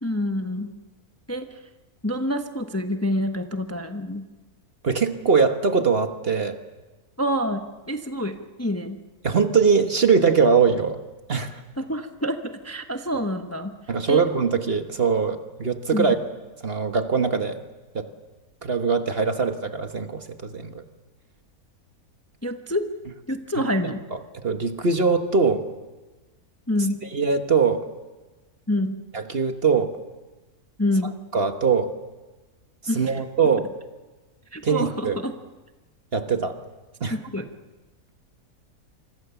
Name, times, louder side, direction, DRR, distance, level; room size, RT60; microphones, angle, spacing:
voice 1, 0.0-0.7 1.3-1.6 2.0-4.2 7.2-7.6 7.9-9.0 11.8-13.7 14.1-14.3 15.9-16.2 22.4-22.9 23.3-24.0 26.7-27.0 28.7-29.0 30.8-31.2 32.9-33.2 34.5-35.3 37.1-37.5, left 1 dB, 10° left, 6 dB, 1.0 m, -27 dB
voice 2, 4.8-6.6 9.2-11.0 11.3-11.6 13.9-16.2 16.6-17.6 17.9-18.1 18.6-20.8 24.4-25.7 27.1-27.9 29.1-29.9 31.3-31.9 32.9-33.7 34.6-35.2 36.1-36.6 37.0-37.2, right 5 dB, 40° right, 7 dB, 1.5 m, -22 dB
27.0 x 25.0 x 7.1 m, 1.2 s
omnidirectional pair, 1.6 m